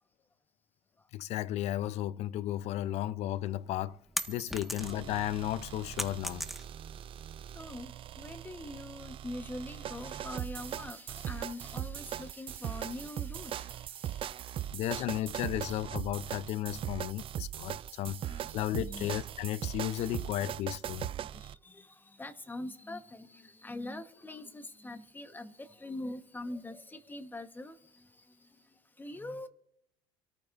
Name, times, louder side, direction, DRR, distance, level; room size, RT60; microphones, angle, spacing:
voice 1, 1.1-4.0 4.3-6.5 14.7-21.1, left 13 dB, 60° left, 0.6 m, -34 dB
sound 1, 3.4-5.2 5.5-7.0, equal, ahead, 1.6 m, -37 dB
sound 2, 4.8-21.6, right 11 dB, 45° right, 0.5 m, -40 dB
voice 2, 7.5-14.2 14.4-15.0 18.1-19.1 21.3-28.1 29.0-29.5, left 1 dB, 15° left, 1.2 m, -44 dB
28.5 x 14.0 x 2.6 m
supercardioid pair, 80°, 12 cm